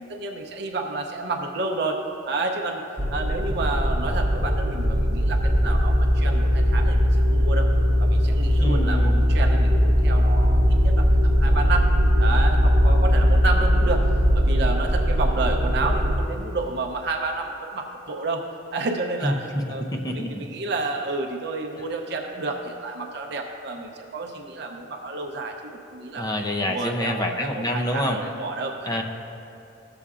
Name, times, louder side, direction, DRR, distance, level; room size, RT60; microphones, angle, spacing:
voice 1, 0.0-7.7 8.0-11.9 12.2-14.1 14.3-18.4 18.7-19.9 20.1-26.3 26.7-28.9, right 3 dB, 60° right, 2 dB, 0.6 m, -30 dB
sound 1, 3.0-16.2, equal, 30° right, 0.8 m, -20 dB
voice 2, 8.6-9.3 19.2-20.3 26.1-28.2 28.9-29.0, left 1 dB, 20° left, 2 dB, 0.6 m, -27 dB
15.0 x 6.9 x 2.5 m, 2.8 s
head